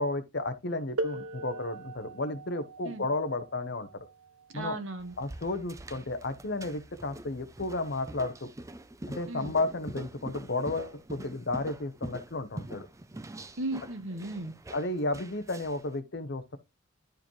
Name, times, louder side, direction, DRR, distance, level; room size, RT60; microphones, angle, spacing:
voice 1, 0.0-4.1 4.5-4.8 5.2-8.5 9.1-12.9 14.7-16.6, left 2 dB, 50° left, 0.9 m, -33 dB
sound 1, 1.0-6.4 7.5-7.6 8.4-8.6, right 2 dB, 80° right, 0.8 m, -41 dB
voice 2, 4.5-5.1 9.3-9.5 13.6-14.5, right 2 dB, 60° right, 1.2 m, -36 dB
sound 2, 5.0-15.9, right 1 dB, 15° right, 0.4 m, -45 dB
11.5 x 4.8 x 3.1 m
head